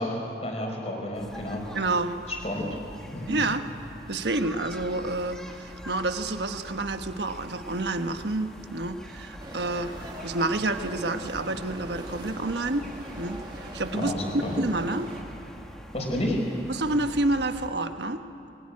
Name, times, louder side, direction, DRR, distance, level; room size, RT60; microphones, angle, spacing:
voice 1, 0.0-1.6 2.3-2.8 3.1-3.4 13.9-14.6 15.9-16.4, left 1 dB, 35° left, 1 dB, 4.9 m, -30 dB
sound 1, 1.1-17.7, equal, 5° left, 1.7 m, -44 dB
voice 2, 1.7-2.2 3.3-3.7 4.1-9.9 10.2-12.9 13.2-15.1 16.7-18.2, right 2 dB, 70° right, 8 dB, 1.3 m, -29 dB
sound 2, 9.4-15.2, right 1 dB, 25° right, 2.5 m, -42 dB
22.5 x 21.0 x 9.7 m, 2.9 s
head